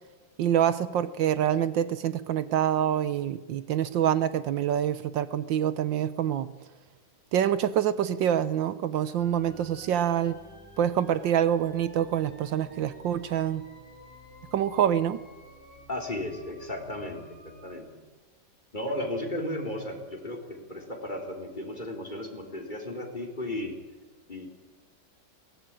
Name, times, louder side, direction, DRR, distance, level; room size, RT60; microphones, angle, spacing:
voice 1, 0.4-6.5 7.3-10.4 10.8-13.7 14.5-15.2, right 10 dB, 75° right, 14 dB, 1.6 m, -26 dB
sound 1, 9.2-17.7, equal, 30° right, 4.4 m, -51 dB
voice 2, 15.9-18.0 18.7-23.7 24.3-24.5, left 1 dB, 25° left, 2 dB, 4.1 m, -35 dB
22.0 x 19.0 x 9.0 m, 1.2 s
omnidirectional pair, 2.1 m